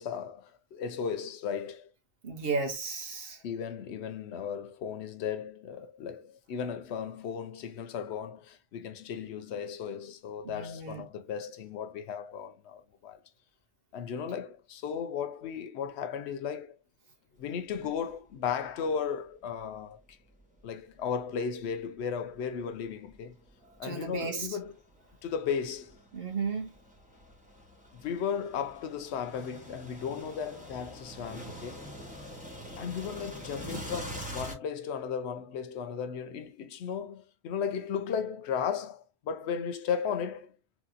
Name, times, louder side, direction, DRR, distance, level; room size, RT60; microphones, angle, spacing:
voice 1, 0.0-1.9 3.4-13.2 13.9-16.8 17.4-20.2 20.6-23.4 23.8-24.7 25.2-26.0 27.9-31.9 32.8-40.5, left 7 dB, 85° left, 0.9 m, -35 dB
voice 2, 2.2-3.4 10.4-11.1 23.8-24.6 26.1-26.7, right 4 dB, 65° right, 1.2 m, -34 dB
sound 1, 17.7-18.0 18.5-18.6 19.5-21.2 21.9-34.5, right 1 dB, 10° right, 0.9 m, -45 dB
3.1 x 2.9 x 2.4 m
omnidirectional pair, 1.1 m